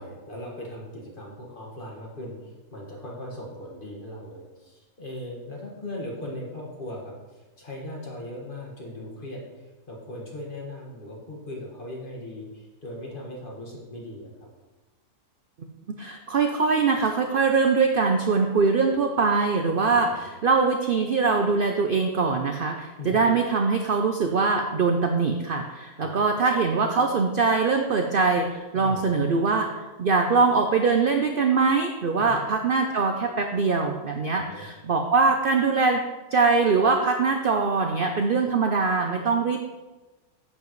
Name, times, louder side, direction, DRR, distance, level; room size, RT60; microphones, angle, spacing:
voice 1, 0.0-14.5 19.9-20.3 23.0-23.3 26.0-26.2 28.7-29.1 32.3-32.4 34.3-34.7, left 1 dB, 35° left, -3 dB, 1.8 m, -39 dB
voice 2, 16.0-29.7 30.0-36.0 36.3-39.6, right 4 dB, 70° right, 4 dB, 0.5 m, -22 dB
10.5 x 7.7 x 3.1 m, 1.2 s
omnidirectional pair, 1.7 m